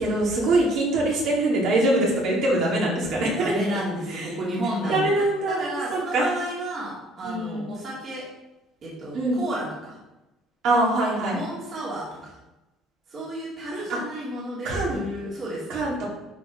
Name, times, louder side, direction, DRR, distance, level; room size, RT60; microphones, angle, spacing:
voice 1, 0.0-3.5 4.1-4.2 4.9-6.3 7.2-7.6 9.1-9.4 10.6-11.4 13.9-14.0 14.6-15.0 15.7-16.1, right 2 dB, 60° right, -4 dB, 2.9 m, -23 dB
voice 2, 3.4-8.3 8.8-10.0 11.2-12.4 13.1-15.8, right 1 dB, 35° right, -6 dB, 2.3 m, -32 dB
11.0 x 4.7 x 3.5 m, 0.97 s
cardioid pair, 150°, 0 cm